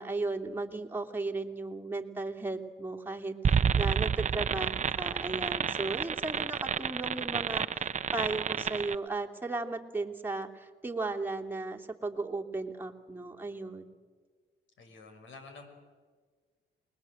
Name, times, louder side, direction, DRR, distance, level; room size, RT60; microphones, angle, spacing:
voice 1, 0.0-13.9, right 3 dB, 10° right, 1 dB, 2.8 m, -36 dB
sound 1, 3.4-8.9, right 7 dB, 35° right, 0.9 m, -29 dB
voice 2, 14.8-15.7, left 3 dB, 75° left, 6 dB, 5.9 m, -49 dB
28.5 x 21.0 x 7.9 m, 1.5 s
cardioid pair, 90°, 20 cm